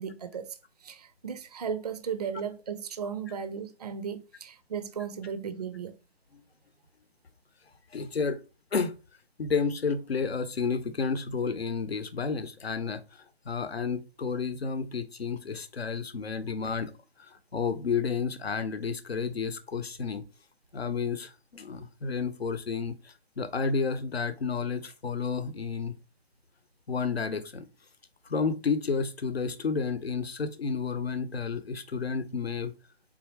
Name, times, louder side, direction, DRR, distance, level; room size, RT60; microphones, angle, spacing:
voice 1, 0.0-6.0, right 7 dB, 40° right, 0.4 m, -36 dB
voice 2, 7.9-8.4 8.7-8.9 9.4-13.0 13.5-16.9 17.2-20.2 20.7-26.0 26.9-27.7 28.3-32.7, left 5 dB, 70° left, 0.8 m, -31 dB
4.2 x 3.6 x 3.2 m
figure-of-eight pair, 140°, 32 cm